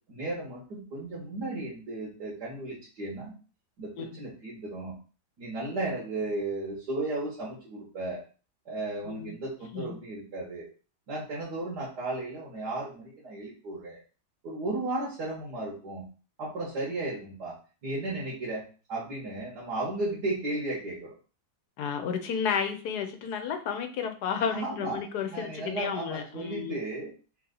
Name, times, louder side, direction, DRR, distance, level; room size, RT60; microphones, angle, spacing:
voice 1, 0.1-3.3 3.8-4.9 5.4-8.2 8.7-10.7 11.1-14.0 14.4-16.1 16.4-18.6 18.9-21.1 24.3-25.0 25.3-27.1, right 2 dB, 85° right, -6 dB, 1.9 m, -34 dB
voice 2, 21.8-26.8, left 7 dB, 80° left, 6 dB, 1.3 m, -32 dB
4.0 x 2.9 x 3.8 m, 0.36 s
omnidirectional pair, 1.7 m